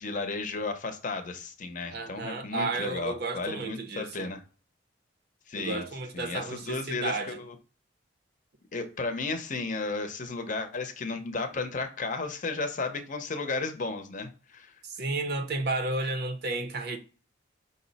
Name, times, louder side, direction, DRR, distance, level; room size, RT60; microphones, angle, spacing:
voice 1, 0.0-4.4 5.5-5.8 6.1-7.5 8.7-14.7, left 3 dB, 45° left, 0.6 m, -34 dB
voice 2, 1.9-4.3 5.6-7.4 11.6-11.7 14.8-17.0, right 2 dB, 55° right, 0.6 m, -32 dB
5.2 x 2.1 x 3.9 m
head